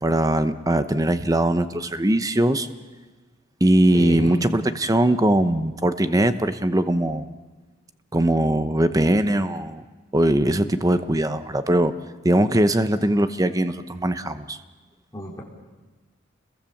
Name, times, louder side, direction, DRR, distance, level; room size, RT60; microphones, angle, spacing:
voice 1, 0.0-2.7 3.6-7.3 8.1-9.8 10.1-11.9 12.2-14.6, right 1 dB, 20° right, 11 dB, 0.9 m, -21 dB
voice 2, 3.9-4.4 15.1-15.4, equal, 15° left, -2 dB, 4.1 m, -31 dB
29.0 x 22.0 x 7.2 m, 1.3 s
head